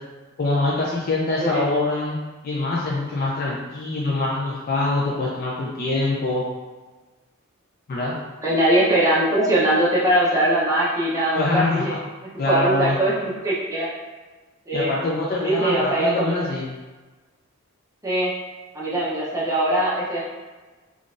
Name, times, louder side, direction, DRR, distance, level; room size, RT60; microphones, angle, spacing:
voice 1, 0.4-2.2 2.4-6.4 7.9-8.1 11.4-12.0 12.4-13.0 14.7-16.8, left 2 dB, 45° left, -5 dB, 0.4 m, -24 dB
voice 2, 8.4-12.0 12.5-13.9 14.7-14.9 15.4-16.4 18.0-18.3 18.7-20.2, right 1 dB, 15° right, -8 dB, 0.6 m, -21 dB
3.7 x 2.4 x 2.4 m, 1.3 s
head